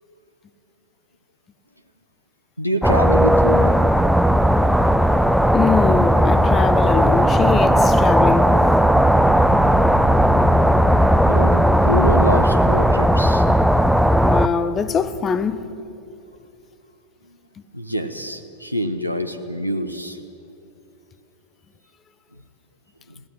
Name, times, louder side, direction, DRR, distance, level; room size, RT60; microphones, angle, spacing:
voice 1, 2.6-4.1 11.3-13.4 17.7-20.2, equal, 90° left, 1.0 m, -25 dB
sound 1, 2.8-14.5, equal, ahead, 0.6 m, -16 dB
voice 2, 5.5-8.6 14.2-15.6, left 6 dB, 25° left, 1.0 m, -22 dB
21.0 x 17.5 x 9.3 m
figure-of-eight pair, 90°, 0 cm